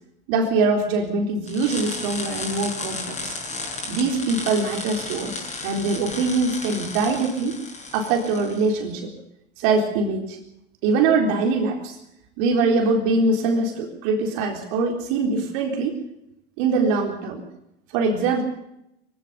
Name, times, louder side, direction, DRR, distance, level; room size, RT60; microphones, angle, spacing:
voice 1, 0.3-3.4 3.9-7.6 7.9-9.1 9.6-10.4 10.8-12.0 12.4-16.0 16.6-17.4 17.9-18.4, right 3 dB, 50° right, 3 dB, 4.1 m, -23 dB
sound 1, 1.5-8.7, left 3 dB, 20° left, 7.5 m, -33 dB
24.0 x 17.0 x 6.9 m, 0.82 s
hypercardioid pair, 100°, 34 cm